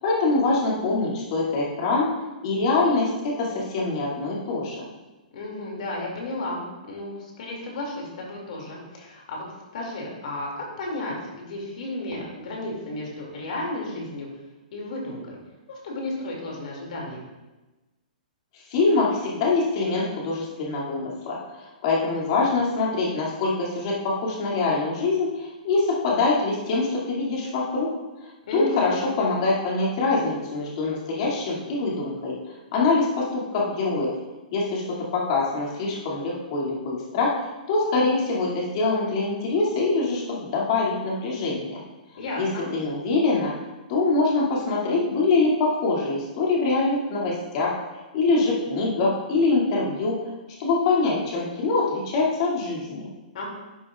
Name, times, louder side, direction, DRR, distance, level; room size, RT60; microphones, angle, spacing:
voice 1, 0.0-2.1 2.4-4.8 18.5-27.9 28.5-32.3 32.7-34.1 34.5-41.8 42.4-43.5 43.9-50.3 50.6-53.1, left 3 dB, 45° left, -4 dB, 2.4 m, -24 dB
voice 2, 5.3-9.4 9.7-14.3 14.7-15.4 15.7-17.2 28.5-29.1 42.2-42.7 53.3-53.4, left 2 dB, 60° left, -1 dB, 2.4 m, -33 dB
11.5 x 6.8 x 2.4 m, 1.1 s
hypercardioid pair, 155°, 5 cm